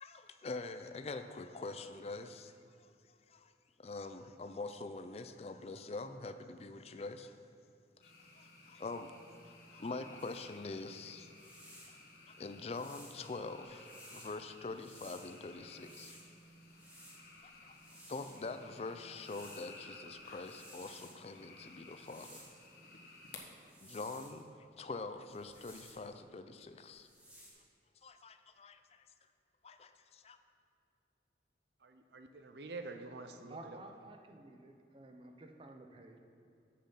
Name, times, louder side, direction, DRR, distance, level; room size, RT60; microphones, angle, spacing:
voice 1, 0.0-2.5 2.8-2.9 3.3-3.5 3.8-7.3 8.4-9.1 9.4-11.3 11.8-11.9 12.3-16.2 17.4-17.8 18.1-22.4 23.8-27.1 28.0-29.0 29.6-30.4, left 3 dB, 35° left, 9 dB, 0.4 m, -44 dB
sound 1, 8.0-23.4, left 2 dB, 55° left, 1.2 m, -56 dB
sound 2, 10.2-10.5 11.2-12.0 12.7-14.3 14.7-16.3 16.7-18.5 19.1-19.9 20.2-21.2 21.9-22.7 23.5-24.4 25.3-26.1 26.9-27.5, equal, 10° right, 1.3 m, -57 dB
voice 2, 31.8-33.8, right 3 dB, 65° right, 7 dB, 0.6 m, -47 dB
voice 3, 33.5-36.2, right 2 dB, 30° right, 4 dB, 0.6 m, -52 dB
7.7 x 7.1 x 5.5 m, 2.6 s
head